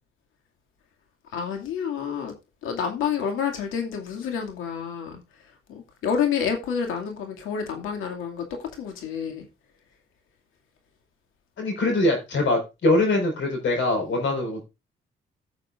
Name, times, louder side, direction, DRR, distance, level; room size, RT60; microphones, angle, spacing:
voice 1, 1.3-2.3 2.6-5.2 5.7-9.5, left 7 dB, 90° left, 2.4 m, -29 dB
voice 2, 11.6-14.6, left 2 dB, 70° left, 4.8 m, -23 dB
16.0 x 6.7 x 2.5 m
cardioid pair, 90°, 20 cm